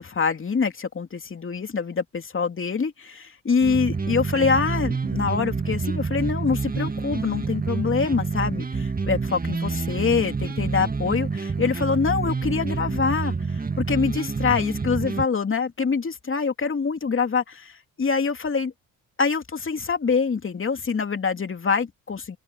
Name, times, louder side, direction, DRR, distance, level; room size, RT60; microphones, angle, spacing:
voice 1, 0.0-18.7 19.2-22.4, left 5 dB, 35° left, 2.9 m, -25 dB
sound 1, 3.6-15.3, right 4 dB, 25° right, 1.9 m, -28 dB
open air
supercardioid pair, 65°, 34 cm